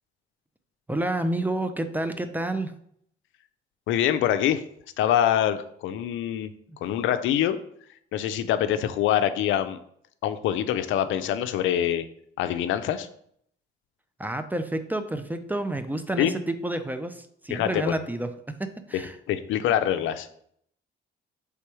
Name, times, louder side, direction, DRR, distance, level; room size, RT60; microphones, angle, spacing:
voice 1, 0.9-2.7 6.7-6.8 14.2-19.2, right 1 dB, 10° right, 9 dB, 0.4 m, -29 dB
voice 2, 3.9-4.6 5.0-6.5 6.8-7.6 8.1-9.8 10.2-12.1 12.4-13.1 16.2-16.3 17.5-17.8 19.3-20.3, left 10 dB, 80° left, 11 dB, 0.4 m, -24 dB
3.4 x 3.0 x 4.7 m, 0.67 s
cardioid pair, 90°, 20 cm